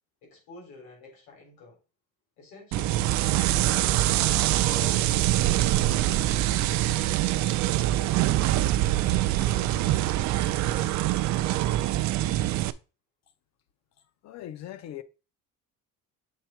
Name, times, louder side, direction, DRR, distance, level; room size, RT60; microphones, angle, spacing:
voice 1, 0.2-1.8 2.4-3.1 4.7-10.1 10.6-11.9, left 3 dB, 75° left, 4.3 m, -49 dB
sound 1, 2.7-12.7, right 15 dB, 55° right, 0.5 m, -24 dB
voice 2, 14.2-15.0, left 12 dB, 50° left, 0.7 m, -39 dB
7.4 x 3.6 x 4.5 m
cardioid pair, 175°, 34 cm